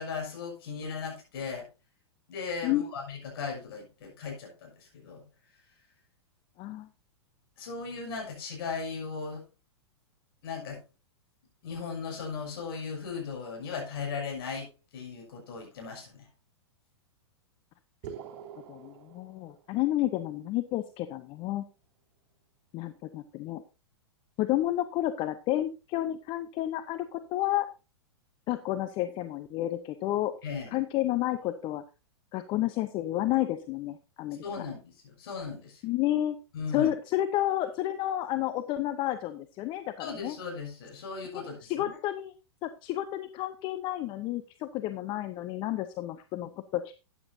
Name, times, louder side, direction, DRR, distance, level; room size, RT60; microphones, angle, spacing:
voice 1, 0.0-1.7 2.3-5.2 7.6-9.4 10.4-10.8 11.6-14.7 14.9-16.3 30.4-30.7 34.4-35.8 36.5-36.9 40.0-41.9, left 5 dB, 55° left, 1 dB, 6.7 m, -37 dB
voice 2, 6.6-6.9 18.7-21.7 22.7-23.6 24.4-27.7 28.5-30.3 30.7-31.8 32.3-34.7 35.8-36.4 36.7-40.4 41.3-41.4 41.7-42.3 42.6-46.9, left 14 dB, 35° left, 10 dB, 0.8 m, -31 dB
sound 1, 18.0-20.0, right 8 dB, 45° right, 2.8 m, -45 dB
13.5 x 9.7 x 2.7 m, 0.30 s
figure-of-eight pair, 105°, 14 cm